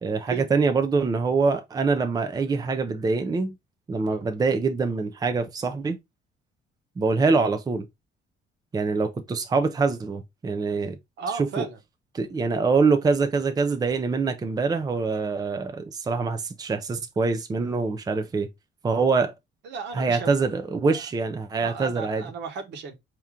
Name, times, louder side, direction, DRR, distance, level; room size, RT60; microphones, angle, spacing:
voice 1, 0.0-3.6 3.9-6.0 7.0-7.9 8.7-11.0 11.4-11.7 12.1-18.5 18.8-19.3 19.9-22.2, right 4 dB, 20° right, 0.6 m, -24 dB
voice 2, 11.2-11.8 19.6-20.3 20.9-21.0 21.6-22.9, right 5 dB, 70° right, 1.3 m, -35 dB
4.7 x 2.9 x 3.6 m
cardioid pair, 125°, 19 cm